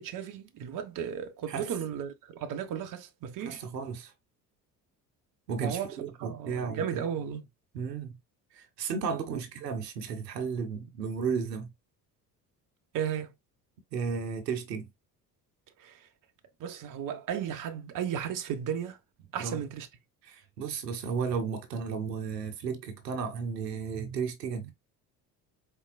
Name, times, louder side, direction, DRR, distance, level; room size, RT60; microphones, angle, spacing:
voice 1, 0.0-3.6 5.6-5.9 6.2-7.4 9.3-9.4 12.9-13.3 15.8-16.0 16.6-19.0 19.3-19.9, right 8 dB, 40° right, 0.9 m, -34 dB
voice 2, 3.4-4.1 5.5-7.0 7.7-8.2 8.5-11.7 13.9-14.9 19.3-19.6 20.2-24.7, right 6 dB, 80° right, 1.0 m, -34 dB
4.5 x 3.6 x 2.2 m
figure-of-eight pair, 55°, 48 cm